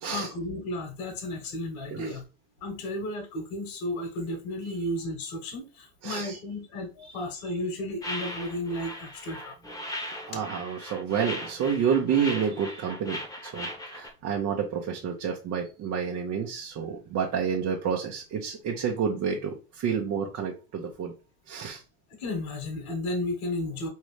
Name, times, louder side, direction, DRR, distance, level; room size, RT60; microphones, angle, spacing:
voice 1, 0.0-2.2 2.6-9.6 22.2-23.9, left 1 dB, 60° left, 1.6 m, -33 dB
voice 2, 6.0-6.4 10.3-21.1 21.5-21.8, right 7 dB, 40° right, 1.0 m, -29 dB
sound 1, 8.0-14.1, left 1 dB, 10° left, 1.2 m, -38 dB
5.0 x 3.2 x 3.2 m
hypercardioid pair, 75°, 42 cm